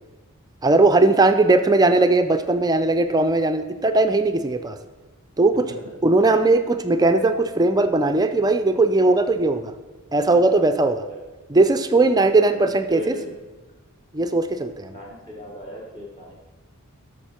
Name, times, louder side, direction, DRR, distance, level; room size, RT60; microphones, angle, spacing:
voice 1, 0.6-4.8 5.4-5.7 6.0-9.7 10.1-11.1 11.5-13.0 14.1-14.9, right 2 dB, 15° right, 9 dB, 0.5 m, -18 dB
voice 2, 12.3-13.4 14.9-16.4, equal, 20° left, -2 dB, 1.3 m, -37 dB
12.5 x 6.5 x 4.4 m, 1.2 s
head